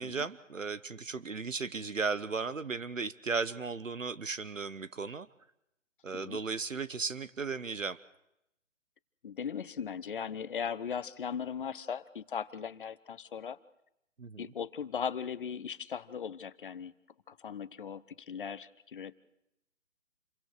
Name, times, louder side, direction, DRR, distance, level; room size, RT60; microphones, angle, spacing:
voice 1, 0.0-5.3 6.0-8.0 14.2-14.5, right 4 dB, 80° right, 14 dB, 1.1 m, -35 dB
voice 2, 9.2-13.6 14.4-16.9 17.3-19.2, left 7 dB, 40° left, 16 dB, 0.9 m, -38 dB
29.0 x 23.5 x 4.9 m, 0.82 s
figure-of-eight pair, 140°, 38 cm